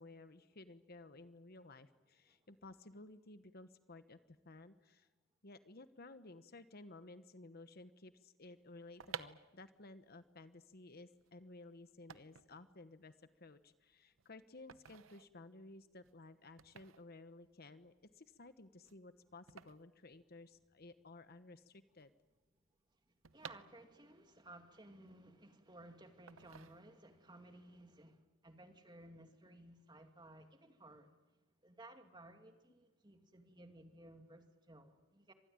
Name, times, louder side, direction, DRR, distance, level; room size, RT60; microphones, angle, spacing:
voice 1, 0.0-5.1 5.4-13.1 13.4-22.1, left 2 dB, 45° left, 11 dB, 1.1 m, -56 dB
sound 1, 8.7-20.9 21.1-21.2 21.4-24.3 24.7-25.7 26.3-27.3 27.6-27.9, right 7 dB, 70° right, 0.9 m, -55 dB
voice 2, 23.3-31.2 31.6-35.3, right 1 dB, 20° right, 6 dB, 2.4 m, -58 dB
25.5 x 20.0 x 9.0 m, 1.1 s
head